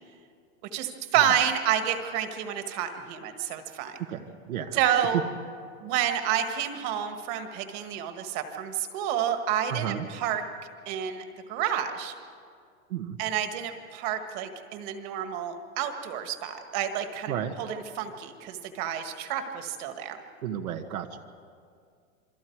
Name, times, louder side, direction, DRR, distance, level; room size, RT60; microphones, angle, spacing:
voice 1, 0.7-4.0 4.7-5.2 5.8-10.4 10.9-12.1 13.2-20.2, right 9 dB, 35° right, 7 dB, 1.7 m, -29 dB
voice 2, 4.0-4.8 9.7-10.1 12.9-13.2 17.3-17.5 20.4-21.2, right 9 dB, 80° right, 5 dB, 1.5 m, -33 dB
28.0 x 22.5 x 4.7 m, 2.2 s
supercardioid pair, 160°, 42 cm